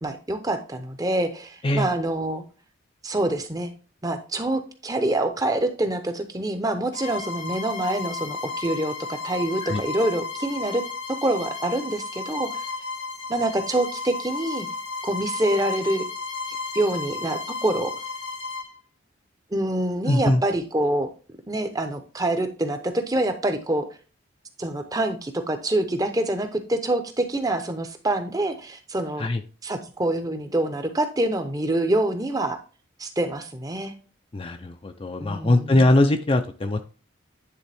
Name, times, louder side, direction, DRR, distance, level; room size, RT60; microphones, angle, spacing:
voice 1, 0.0-2.4 3.0-3.7 4.0-10.8 11.1-12.6 13.3-14.7 15.0-16.0 16.7-17.9 19.5-21.1 21.5-23.9 24.6-29.3 29.6-32.6 33.0-33.9 35.2-35.9, right 1 dB, 20° right, 7 dB, 0.7 m, -26 dB
Bowed string instrument, 6.9-18.7, left 4 dB, 65° left, 1.1 m, -33 dB
voice 2, 20.1-20.4 29.2-29.4 34.3-36.8, left 1 dB, 25° left, 7 dB, 0.4 m, -21 dB
9.9 x 3.6 x 3.4 m, 0.37 s
head